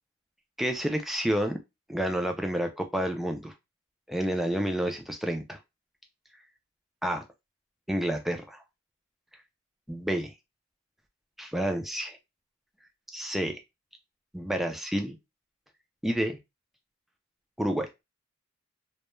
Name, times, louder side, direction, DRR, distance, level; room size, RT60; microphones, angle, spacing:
voice 1, 0.6-1.6 1.9-3.5 4.1-5.6 7.0-7.2 7.9-8.6 9.9-10.3 11.4-12.2 13.1-13.6 14.3-15.2 16.0-16.4 17.6-17.9, right 1 dB, ahead, 4 dB, 0.3 m, -29 dB
2.2 x 2.1 x 3.0 m, 0.22 s
head